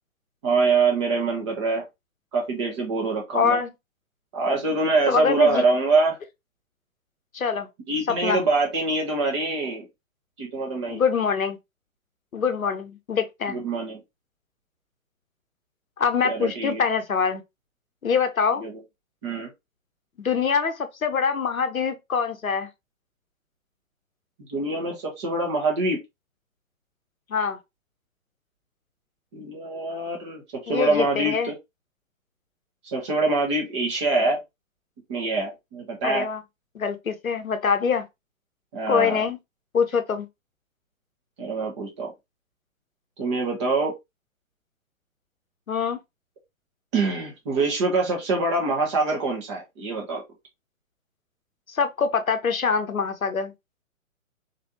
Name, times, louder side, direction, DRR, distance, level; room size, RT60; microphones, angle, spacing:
voice 1, 0.4-1.8 2.3-3.6 4.3-6.2 7.9-9.9 10.4-11.0 13.5-14.0 16.2-16.8 18.6-18.7 19.2-19.5 24.5-26.0 29.3-31.5 32.9-34.4 35.1-36.3 38.7-39.2 41.4-42.1 43.2-43.9 46.9-50.2, right 3 dB, 20° right, 0.9 m, -24 dB
voice 2, 3.3-3.7 5.1-5.6 7.3-7.7 8.1-8.4 10.9-11.6 12.3-13.6 16.0-17.4 18.0-18.6 20.2-22.7 27.3-27.6 30.7-31.5 36.0-36.4 36.7-38.1 38.9-39.4 39.7-40.3 45.7-46.0 51.7-53.5, left 6 dB, 80° left, 0.7 m, -24 dB
3.1 x 2.6 x 2.8 m
figure-of-eight pair, 125°, 41 cm